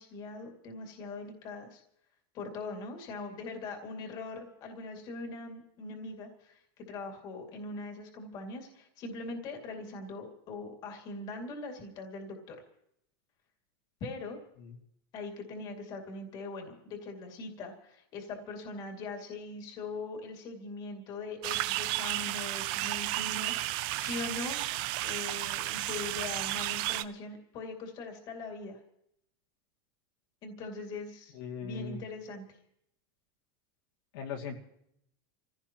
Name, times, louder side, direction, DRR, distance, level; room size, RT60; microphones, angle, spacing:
voice 1, 0.0-1.8 2.3-12.6 14.0-14.4 15.1-24.6 25.0-28.8 30.4-32.6, left 3 dB, 35° left, 2 dB, 2.4 m, -41 dB
sound 1, 21.4-27.0, right 16 dB, 40° right, 0.5 m, -33 dB
voice 2, 31.4-32.0 34.1-34.6, left 6 dB, 65° left, 0 dB, 2.4 m, -38 dB
27.5 x 16.0 x 3.0 m, 0.75 s
supercardioid pair, 170°, 13 cm